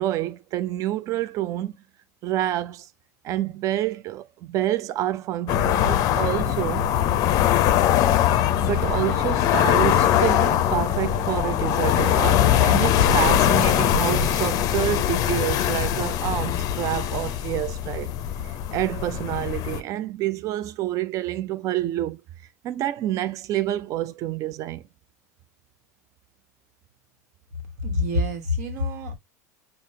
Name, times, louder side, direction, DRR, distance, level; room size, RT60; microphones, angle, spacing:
voice 1, 0.0-1.7 2.2-2.9 3.2-6.9 8.6-18.1 18.4-22.2 22.6-24.8, right 13 dB, 40° right, 0.3 m, -28 dB
sound 1, 5.5-19.8, left 11 dB, 45° left, 0.5 m, -22 dB
voice 2, 27.8-29.2, left 2 dB, 65° right, 1.0 m, -26 dB
5.1 x 2.0 x 3.0 m
hypercardioid pair, 85°, 9 cm